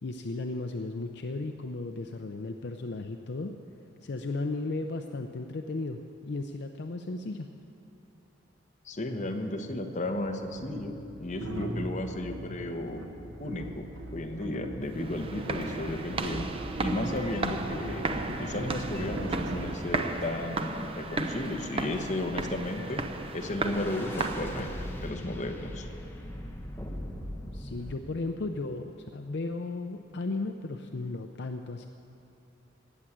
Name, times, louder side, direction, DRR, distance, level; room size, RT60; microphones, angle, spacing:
voice 1, 0.0-3.5 4.0-7.5 27.5-31.9, left 3 dB, 60° left, 6 dB, 0.6 m, -35 dB
voice 2, 8.8-10.9 11.2-13.0 13.4-13.9 14.1-16.5 16.8-18.1 18.4-23.0 23.3-25.9, left 1 dB, 40° left, 3 dB, 1.1 m, -34 dB
sound 1, 9.0-9.1 10.0-20.6, right 1 dB, 90° right, 1.2 m, -39 dB
sound 2, 14.9-24.9, right 2 dB, 30° right, 0.7 m, -35 dB
sound 3, 15.3-28.0, left 1 dB, 10° left, 1.0 m, -43 dB
17.0 x 7.4 x 9.9 m, 2.8 s
head